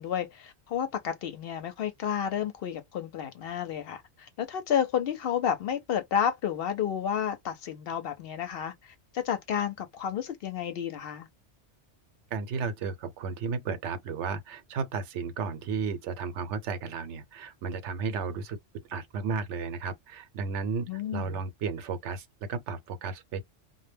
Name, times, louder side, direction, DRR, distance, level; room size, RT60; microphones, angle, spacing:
voice 1, 0.0-11.3 20.9-21.4, left 8 dB, 65° left, 0.7 m, -31 dB
voice 2, 12.3-18.6 18.9-23.4, right 5 dB, 90° right, 0.9 m, -33 dB
2.1 x 2.0 x 3.2 m
omnidirectional pair, 1.2 m